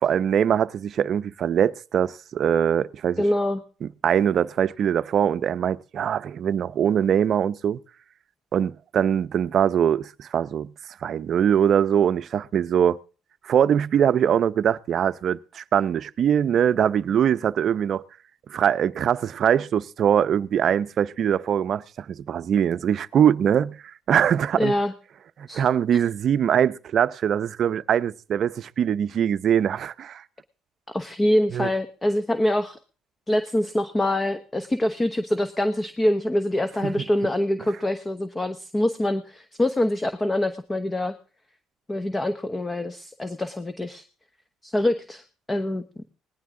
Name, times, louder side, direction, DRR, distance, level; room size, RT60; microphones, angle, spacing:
voice 1, 0.0-3.2 3.8-7.8 8.5-10.7 11.0-13.0 13.4-18.1 18.5-23.8 24.1-24.7 25.4-30.2 31.5-31.7 36.8-36.9, right 9 dB, 55° right, 0.6 m, -22 dB
voice 2, 3.2-3.6 24.6-24.9 25.5-25.6 30.9-32.8 33.3-41.1 41.9-44.0 44.6-45.2 45.5-45.8, left 1 dB, 15° left, 1.0 m, -24 dB
19.0 x 15.5 x 3.8 m
cardioid pair, 95°, 0 cm